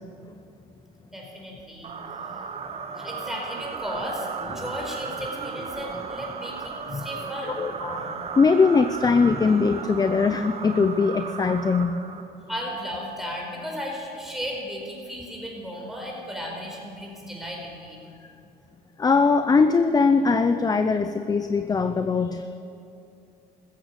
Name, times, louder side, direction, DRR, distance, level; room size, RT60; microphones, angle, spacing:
voice 1, 1.1-2.4 2.9-8.2 12.5-18.0, equal, ahead, -2 dB, 4.7 m, -35 dB
sound 1, 1.8-12.6, right 5 dB, 35° right, 1.0 m, -35 dB
voice 2, 7.4-12.0 19.0-22.6, left 4 dB, 20° left, 10 dB, 0.6 m, -21 dB
15.0 x 14.0 x 6.8 m, 2.6 s
cardioid pair, 110°, 17 cm